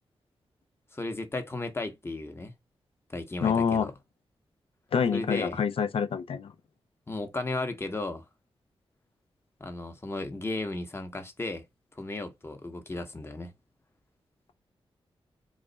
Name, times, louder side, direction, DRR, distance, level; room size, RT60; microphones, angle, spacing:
voice 1, 0.9-2.5 3.1-3.9 5.1-5.6 7.1-8.3 9.6-11.6 12.0-13.5, left 2 dB, 25° left, 0.9 m, -35 dB
voice 2, 3.4-3.9 4.9-6.5, left 6 dB, 65° left, 0.5 m, -26 dB
3.1 x 2.4 x 3.9 m
cardioid pair, 70°, 10 cm